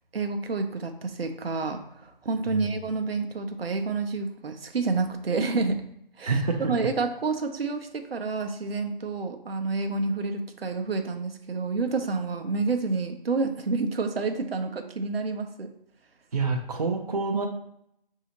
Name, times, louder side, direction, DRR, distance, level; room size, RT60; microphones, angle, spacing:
voice 1, 0.1-5.8 6.2-6.4 6.7-15.7, right 4 dB, 85° right, 5 dB, 0.7 m, -29 dB
voice 2, 6.3-6.8 16.3-17.5, right 4 dB, 45° right, 3 dB, 0.5 m, -27 dB
5.7 x 2.7 x 2.9 m, 0.74 s
figure-of-eight pair, 165°, 29 cm